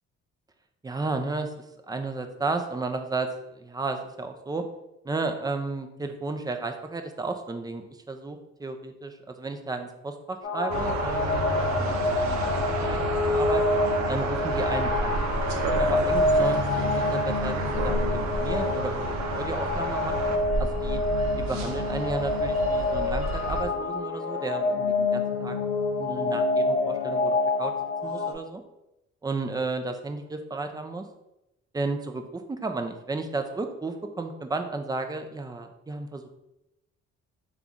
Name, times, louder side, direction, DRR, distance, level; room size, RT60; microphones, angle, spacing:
voice 1, 0.8-4.6 5.0-13.6 14.1-15.2 15.5-21.0 21.4-25.6 26.0-27.7 28.0-28.6 29.2-31.0 31.7-36.3, right 3 dB, 15° right, 6 dB, 0.4 m, -33 dB
sound 1, 10.4-28.3, left 3 dB, 45° left, 0.6 m, -27 dB
sound 2, 10.7-23.6, right 2 dB, 65° right, 0.7 m, -30 dB
3.5 x 2.4 x 3.9 m, 0.91 s
cardioid pair, 90°, 30 cm